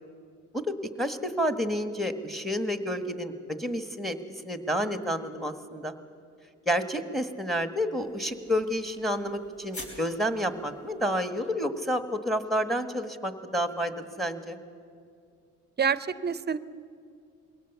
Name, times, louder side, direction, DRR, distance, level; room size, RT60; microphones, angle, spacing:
voice 1, 0.5-4.2 4.4-5.9 6.7-14.6, equal, ahead, 9 dB, 1.4 m, -30 dB
sound 1, 8.0-11.5, left 1 dB, 50° left, 4.9 m, -48 dB
voice 2, 15.8-16.6, right 6 dB, 35° right, 16 dB, 0.6 m, -27 dB
22.0 x 18.0 x 7.1 m, 2.3 s
cardioid pair, 90°, 30 cm